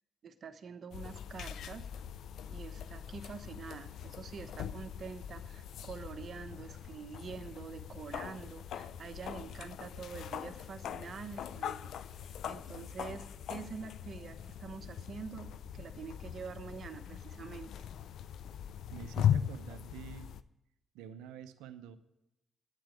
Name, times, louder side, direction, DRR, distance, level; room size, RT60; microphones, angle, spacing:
voice 1, 0.2-1.9 2.5-17.7, right 5 dB, 60° right, 9 dB, 1.0 m, -46 dB
sound 1, 0.9-20.4, left 9 dB, 75° left, 0.4 m, -40 dB
voice 2, 18.9-20.3 20.9-22.0, right 9 dB, 85° right, 11 dB, 0.6 m, -48 dB
9.2 x 9.0 x 8.3 m, 0.89 s
hypercardioid pair, 45°, 0 cm